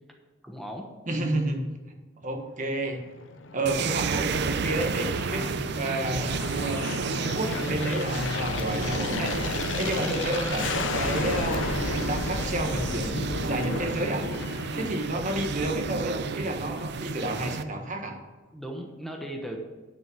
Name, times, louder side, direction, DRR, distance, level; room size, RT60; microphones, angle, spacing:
voice 1, 0.4-0.9 7.5-7.7 9.8-10.3 14.7-15.3 18.5-19.6, equal, ahead, 1 dB, 1.1 m, -37 dB
voice 2, 1.1-1.7 2.2-3.0 3.5-6.9 7.2-14.3 14.7-18.2, right 1 dB, 45° right, 3 dB, 1.5 m, -31 dB
Aircraft, 2.8-15.5, left 4 dB, 75° left, 0.7 m, -34 dB
sound 1, 3.7-17.6, right 4 dB, 60° right, 0.5 m, -31 dB
sound 2, 8.1-13.1, left 2 dB, 25° left, 0.8 m, -39 dB
10.5 x 6.2 x 6.2 m, 1.3 s
head